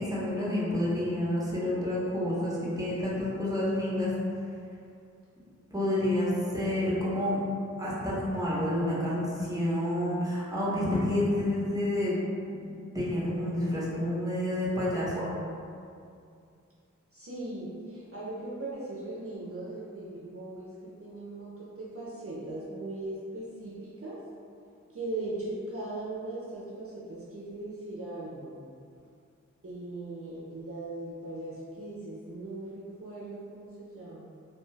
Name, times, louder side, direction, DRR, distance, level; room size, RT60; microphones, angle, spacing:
voice 1, 0.0-4.1 5.7-7.4 7.8-12.2 12.5-15.3, left 1 dB, 10° right, -7 dB, 0.8 m, -29 dB
voice 2, 6.4-7.4 17.1-24.2 24.9-28.6 29.6-34.3, right 2 dB, 50° right, -7 dB, 0.5 m, -39 dB
2.7 x 2.2 x 3.1 m, 2.4 s
wide cardioid pair, 45°, 30 cm